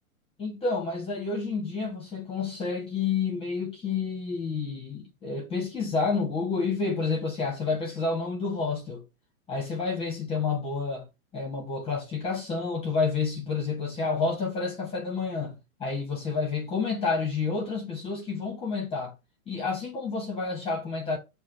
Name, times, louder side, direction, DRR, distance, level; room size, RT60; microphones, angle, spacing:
voice 1, 0.4-9.0 9.5-11.0 11.3-15.5 15.8-19.1 19.5-21.2, left 4 dB, 15° left, 1.2 m, -29 dB
7.3 x 2.7 x 2.6 m
hypercardioid pair, 130°, 42 cm